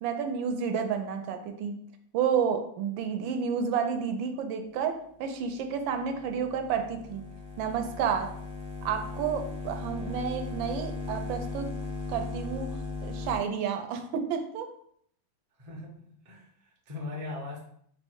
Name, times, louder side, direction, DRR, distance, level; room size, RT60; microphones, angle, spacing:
voice 1, 0.0-1.8 2.1-7.2 7.6-8.3 8.8-11.7 12.1-14.7, right 7 dB, 85° right, 6 dB, 1.3 m, -30 dB
sound 1, 5.7-13.4, left 3 dB, 60° left, 0.6 m, -38 dB
voice 2, 15.6-15.9 16.2-17.6, left 3 dB, 40° right, -2 dB, 0.4 m, -39 dB
4.1 x 2.1 x 4.5 m, 0.67 s
omnidirectional pair, 2.1 m